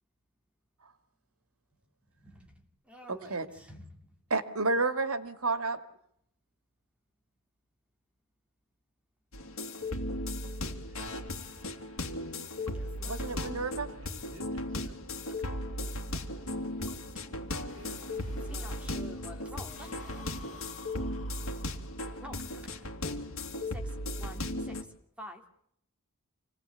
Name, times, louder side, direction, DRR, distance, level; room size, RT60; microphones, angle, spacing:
voice 1, 2.2-3.9 12.5-13.2 17.7-20.6 22.2-22.9 23.7-24.8 25.2-25.4, equal, 5° right, 3 dB, 3.2 m, -49 dB
voice 2, 3.1-3.5 4.3-5.8 13.0-13.9, right 3 dB, 90° right, 10 dB, 2.4 m, -30 dB
sound 1, 9.3-24.8, left 1 dB, 70° left, 3.1 m, -36 dB
voice 3, 10.8-11.3 13.9-15.3 17.5-18.7, right 2 dB, 60° right, 5 dB, 3.6 m, -56 dB
sound 2, 13.9-19.1 19.5-22.2, left 4 dB, 35° left, 5.5 m, -54 dB
28.0 x 19.0 x 8.4 m, 0.70 s
head